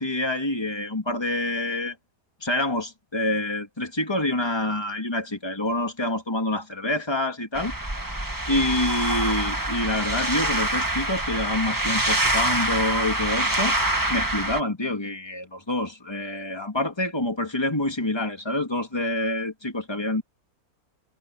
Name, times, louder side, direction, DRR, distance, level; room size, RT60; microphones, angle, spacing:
voice 1, 0.0-1.9 2.4-7.7 8.5-13.7 14.1-20.2, left 1 dB, 15° left, 2.7 m, -27 dB
sound 1, 7.5-14.6, right 1 dB, 15° right, 1.7 m, -25 dB
omnidirectional pair, 1.5 m